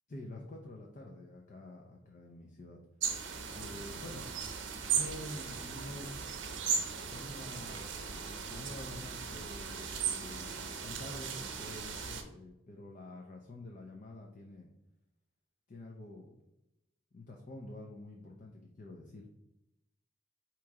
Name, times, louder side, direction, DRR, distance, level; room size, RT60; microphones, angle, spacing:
voice 1, 0.1-2.8 3.5-4.2 4.9-6.1 6.8-14.7 15.7-16.4 17.1-19.3, left 1 dB, 45° left, 0 dB, 0.5 m, -48 dB
sound 1, 3.0-12.2, right 6 dB, 80° right, 0.6 m, -37 dB
3.6 x 3.0 x 4.6 m, 0.89 s
head